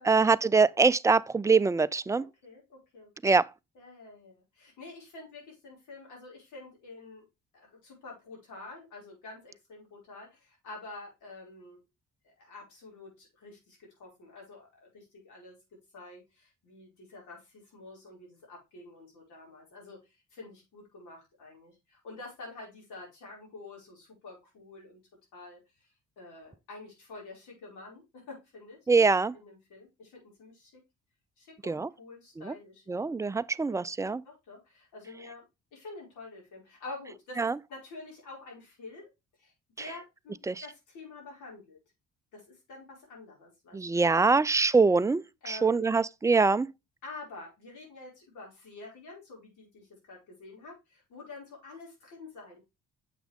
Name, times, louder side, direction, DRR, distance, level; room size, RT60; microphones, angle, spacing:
voice 1, 0.0-2.2 3.2-3.5 28.9-29.3 31.7-31.9 32.4-32.5 32.9-34.2 37.4-37.5 40.5-40.6 43.7-46.7, right 4 dB, 10° right, 0.3 m, -24 dB
voice 2, 2.2-3.4 3.8-7.2 7.5-11.8 12.2-15.6 15.9-25.0 25.3-28.8 29.3-30.8 31.4-33.1 33.7-33.8 34.2-35.4 35.7-39.1 39.4-41.8 42.3-44.4 45.4-45.9 47.0-52.6, left 3 dB, 80° left, 5.2 m, -48 dB
7.4 x 5.9 x 3.4 m
cardioid pair, 90°, 30 cm